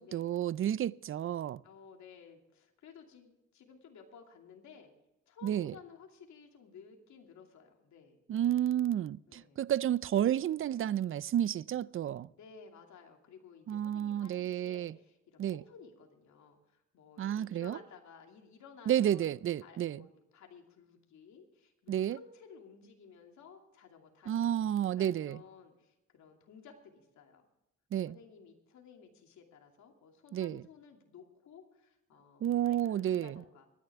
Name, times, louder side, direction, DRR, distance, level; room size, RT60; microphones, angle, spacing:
voice 1, 0.0-1.6 5.4-5.7 8.3-12.3 13.7-14.9 15.4-15.6 17.2-17.8 18.9-20.0 21.9-22.2 24.3-25.4 27.9-28.2 30.3-30.6 32.4-33.4, right 11 dB, 45° right, 0.5 m, -31 dB
voice 2, 1.6-4.9 5.3-8.2 9.3-9.7 12.3-19.3 19.6-24.5 25.0-27.5 28.1-33.7, left 6 dB, 70° left, 2.7 m, -55 dB
24.5 x 10.0 x 3.6 m
cardioid pair, 90°, 30 cm